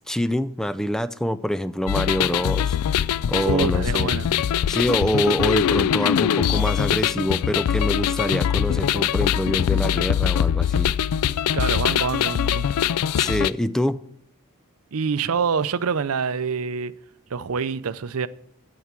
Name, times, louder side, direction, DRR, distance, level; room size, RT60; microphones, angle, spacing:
voice 1, 0.0-2.8 3.3-4.1 4.7-10.9 13.2-14.0, equal, ahead, 0.3 m, -25 dB
sound 1, 1.9-13.5, left 9 dB, 90° left, 0.3 m, -22 dB
voice 2, 3.4-4.4 11.5-12.7 14.9-16.9 17.3-18.3, right 6 dB, 70° right, 0.5 m, -26 dB
14.0 x 4.8 x 7.3 m
head